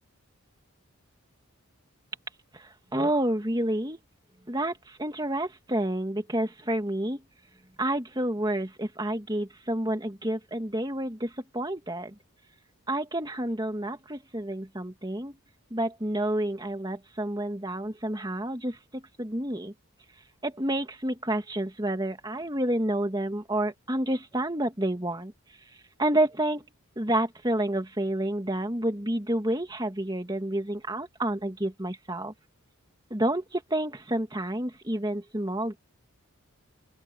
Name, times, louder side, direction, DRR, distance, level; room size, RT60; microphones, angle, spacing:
voice 1, 2.5-4.0 4.5-7.2 7.8-12.1 12.9-15.3 15.7-19.7 20.4-25.3 26.0-26.7 27.0-32.3 33.1-35.8, right 1 dB, 20° right, 2.2 m, -29 dB
open air
head